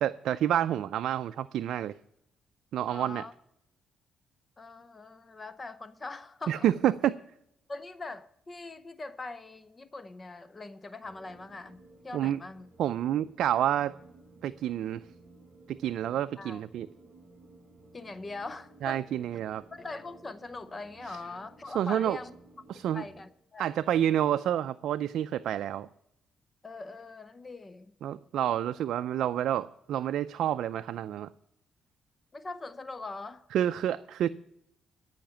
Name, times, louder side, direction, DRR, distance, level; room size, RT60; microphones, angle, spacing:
voice 1, 0.0-1.9 2.7-3.2 6.5-7.1 12.1-12.4 12.8-13.9 14.4-15.0 15.8-16.9 18.8-19.6 21.1-21.2 21.7-22.2 22.7-23.0 23.6-25.9 28.0-31.3 33.5-34.3, right 11 dB, 75° right, 0.4 m, -28 dB
voice 2, 2.9-3.3 4.6-6.7 7.7-12.7 16.4-16.6 17.9-19.0 19.7-22.3 22.7-23.7 26.6-27.9 32.3-33.4, left 3 dB, 25° left, 0.7 m, -42 dB
sound 1, 11.0-23.2, right 2 dB, 40° right, 2.9 m, -56 dB
13.5 x 5.8 x 9.0 m
cardioid pair, 90°, 0 cm